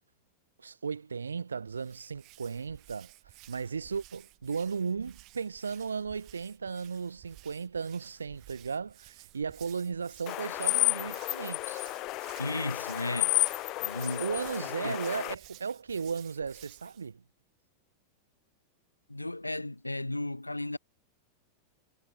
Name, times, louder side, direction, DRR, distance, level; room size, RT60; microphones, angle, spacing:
voice 1, 0.6-3.1 3.5-11.8 14.2-17.2, right 5 dB, 75° right, 0.6 m, -35 dB
Hands, 1.7-17.1, right 22 dB, 40° right, 7.2 m, -54 dB
sound 1, 10.3-15.3, left 19 dB, 40° left, 0.3 m, -31 dB
voice 2, 12.4-13.4 13.8-14.3 14.8-15.0 19.1-20.8, left 2 dB, 85° left, 0.6 m, -34 dB
figure-of-eight pair, 90°, 0 cm